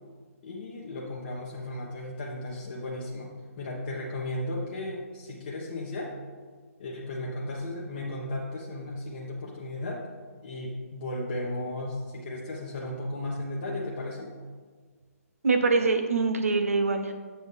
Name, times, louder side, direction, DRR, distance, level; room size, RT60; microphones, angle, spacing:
voice 1, 0.4-6.2 6.8-10.0 10.4-14.3, left 1 dB, 40° left, -3 dB, 1.0 m, -35 dB
voice 2, 15.4-17.1, right 4 dB, 65° right, 6 dB, 0.8 m, -24 dB
7.5 x 7.0 x 3.3 m, 1.5 s
figure-of-eight pair, 135°, 8 cm